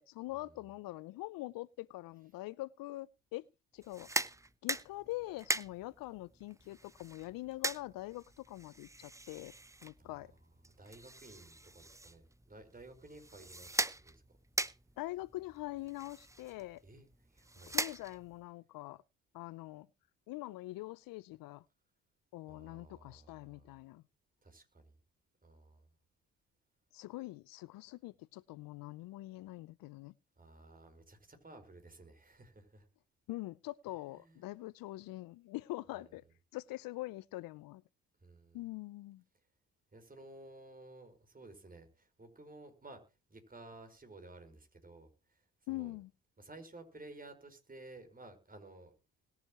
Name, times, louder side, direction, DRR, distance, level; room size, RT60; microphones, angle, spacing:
voice 1, 0.0-3.5 3.7-4.1 4.6-9.5 9.8-10.3 15.0-16.8 17.7-19.0 19.3-19.9 20.3-21.6 22.3-24.0 26.9-30.1 33.3-36.2 36.5-37.8 38.5-39.2 45.7-46.1, left 18 dB, 70° left, 0.6 m, -44 dB
sound 1, 3.8-18.4, right 2 dB, 10° right, 0.8 m, -41 dB
voice 2, 10.0-10.3 10.8-14.2 16.8-17.8 22.5-23.7 24.4-24.9 25.4-25.9 30.4-32.9 34.1-34.4 36.0-36.1 38.2-38.6 39.9-43.0 43.3-46.0 46.4-48.9, right 2 dB, 25° right, 4.9 m, -55 dB
20.5 x 7.8 x 3.0 m
supercardioid pair, 65°, 36 cm